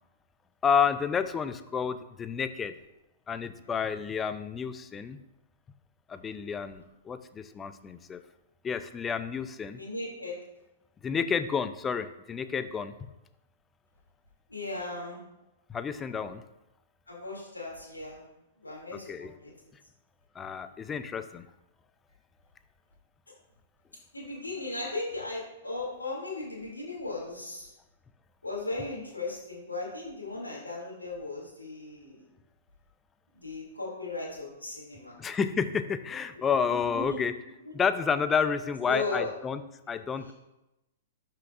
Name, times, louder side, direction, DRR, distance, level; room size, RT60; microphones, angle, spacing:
voice 1, 0.6-2.8 3.3-5.2 6.1-8.2 8.6-9.8 11.0-12.9 15.7-16.4 18.9-19.3 20.3-21.5 35.2-37.3 37.7-39.6 39.9-40.3, left 6 dB, 15° left, 12 dB, 0.5 m, -30 dB
voice 2, 9.7-10.4 14.5-15.2 17.1-18.2 18.6-19.5 24.1-27.7 28.4-32.2 33.4-35.2 36.7-37.0 37.7-37.8 38.9-39.3 40.3-40.4, left 3 dB, 80° left, -4 dB, 2.5 m, -37 dB
11.5 x 5.9 x 2.5 m, 0.95 s
figure-of-eight pair, 110°, 0 cm